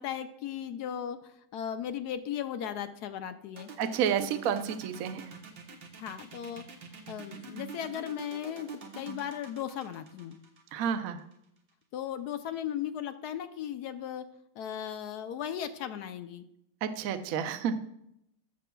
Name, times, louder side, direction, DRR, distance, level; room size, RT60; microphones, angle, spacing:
voice 1, 0.0-3.7 5.9-6.6 6.9-10.4 11.9-14.2 14.6-16.4, left 9 dB, 70° left, 10 dB, 1.0 m, -37 dB
sound 1, 3.6-11.3, right 5 dB, 80° right, 1.9 m, -45 dB
voice 2, 3.8-5.3 10.7-11.2 16.8-17.7, right 8 dB, 65° right, 9 dB, 0.9 m, -30 dB
16.0 x 6.7 x 2.3 m, 0.78 s
omnidirectional pair, 2.0 m